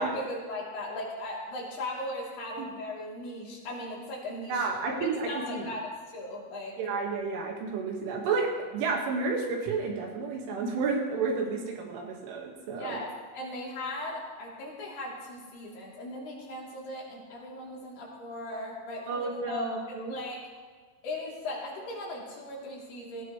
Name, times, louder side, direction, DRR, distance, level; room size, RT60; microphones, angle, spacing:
voice 1, 0.0-4.7 4.9-5.8 6.1-6.8 12.8-20.4 21.0-23.2, left 1 dB, 55° left, -5 dB, 5.3 m, -38 dB
voice 2, 4.5-5.7 6.8-13.0 19.1-20.2, right 4 dB, 75° right, 0 dB, 4.3 m, -31 dB
19.5 x 17.0 x 3.3 m, 1.5 s
omnidirectional pair, 5.7 m